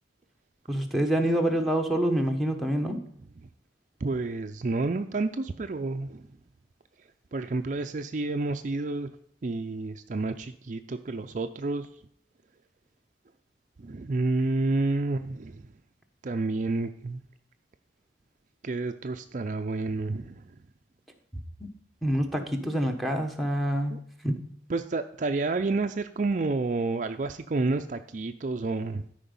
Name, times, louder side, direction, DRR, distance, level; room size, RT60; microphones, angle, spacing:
voice 1, 0.7-3.0 22.0-24.0 24.2-24.4, right 1 dB, ahead, 2 dB, 1.0 m, -26 dB
voice 2, 4.0-6.2 7.3-9.1 9.4-11.9 13.8-15.7 16.2-17.2 18.6-20.4 23.9-24.0 24.7-29.1, right 3 dB, 40° right, 7 dB, 0.4 m, -29 dB
12.5 x 5.1 x 5.4 m, 0.66 s
head